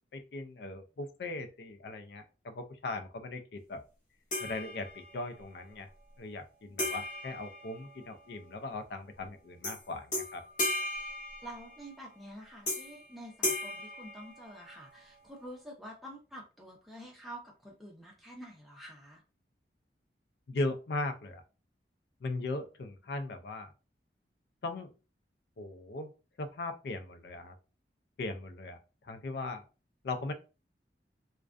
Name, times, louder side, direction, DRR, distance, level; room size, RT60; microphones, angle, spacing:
voice 1, 0.1-3.8 4.4-5.9 6.2-10.4 20.5-21.4 22.2-23.7 24.6-24.9 25.6-26.1 26.4-27.6 28.2-28.8 29.0-29.6 30.0-30.3, left 2 dB, 65° left, 6 dB, 0.4 m, -38 dB
sound 1, 4.3-5.3 6.8-8.4 9.6-9.8 10.1-11.9 12.7-13.1 13.4-14.9, left 1 dB, 45° left, 0.8 m, -36 dB
voice 2, 11.4-19.2, equal, ahead, -2 dB, 0.6 m, -48 dB
2.4 x 2.2 x 2.4 m, 0.32 s
head